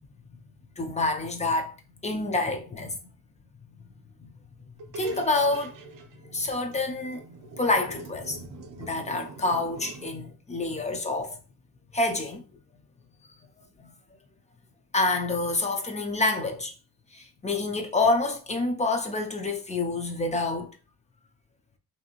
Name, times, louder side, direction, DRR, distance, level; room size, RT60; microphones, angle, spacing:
voice 1, 0.8-1.7 2.0-3.0 3.8-3.9 4.2-4.3 4.9-5.8 6.2-7.3 7.5-8.4 8.8-11.4 11.9-12.4 14.9-16.7 17.1-20.7, left 2 dB, 20° left, 0.3 m, -27 dB
sound 1, 4.8-10.1, right 3 dB, 60° right, 0.5 m, -44 dB
2.9 x 2.7 x 2.4 m
wide cardioid pair, 160°, 37 cm